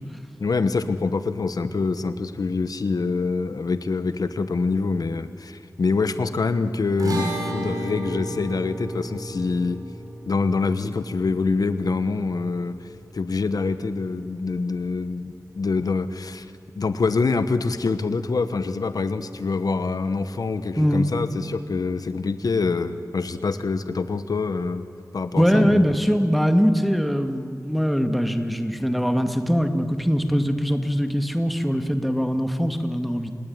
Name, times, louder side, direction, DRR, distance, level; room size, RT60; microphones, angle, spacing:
voice 1, 0.4-9.8 10.3-24.9 25.1-25.9, left 4 dB, 85° left, 11 dB, 1.1 m, -25 dB
sound 1, 7.0-13.5, right 1 dB, 85° right, 7.2 m, -33 dB
voice 2, 20.8-21.1 25.4-33.3, equal, ahead, 7 dB, 2.1 m, -22 dB
29.0 x 18.0 x 9.6 m, 2.5 s
wide cardioid pair, 65°, 6 cm